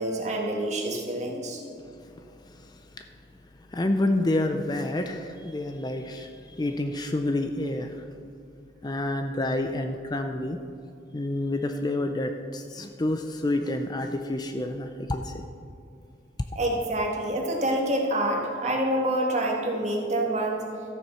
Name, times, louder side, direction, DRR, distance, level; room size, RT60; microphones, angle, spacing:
voice 1, 0.0-1.6 16.5-20.6, right 1 dB, 40° right, 0 dB, 1.7 m, -27 dB
voice 2, 2.6-3.0 3.7-8.1 8.8-10.6 11.1-15.5, left 1 dB, 20° left, 6 dB, 0.4 m, -28 dB
13.5 x 7.6 x 5.6 m, 2.5 s
head